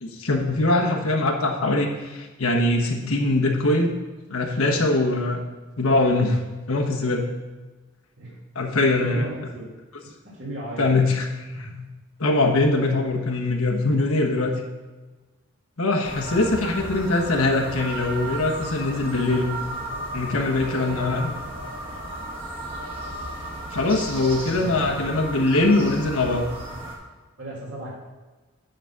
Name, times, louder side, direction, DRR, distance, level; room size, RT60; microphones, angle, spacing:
voice 1, 0.0-3.9 4.3-5.4 5.8-6.4 6.7-7.3 8.5-9.5 10.8-11.9 12.2-14.6 15.8-19.5 20.1-21.3 23.7-26.5, left 2 dB, 85° left, 1 dB, 1.3 m, -22 dB
voice 2, 9.0-9.7 10.2-10.9 16.3-16.5 20.7-21.1 24.5-25.1 27.4-27.9, right 1 dB, 60° right, -5 dB, 2.8 m, -35 dB
sound 1, 16.0-27.0, right 1 dB, 25° right, 1.5 m, -34 dB
10.0 x 4.0 x 6.0 m, 1.2 s
head